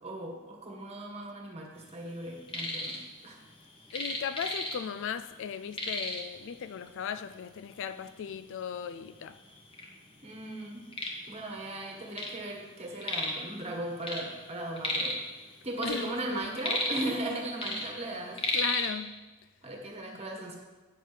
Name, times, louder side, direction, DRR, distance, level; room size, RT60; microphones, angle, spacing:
voice 1, 0.0-3.0 3.2-3.4 10.2-10.9 11.3-15.2 15.6-18.4 19.6-20.6, right 1 dB, 30° right, 1.5 m, -37 dB
sound 1, 2.2-3.0 3.3-5.1 5.3-5.4 5.7-6.4 7.2-7.3 7.8-7.9 8.6-8.7 9.0-9.9 10.3-12.4 12.7-13.5 13.8-15.3 15.6-17.3 17.6-18.9, left 1 dB, 25° left, 1.3 m, -33 dB
voice 2, 3.9-9.4 15.8-16.4 18.5-19.2, left 7 dB, 60° left, 0.3 m, -37 dB
9.4 x 6.6 x 5.0 m
head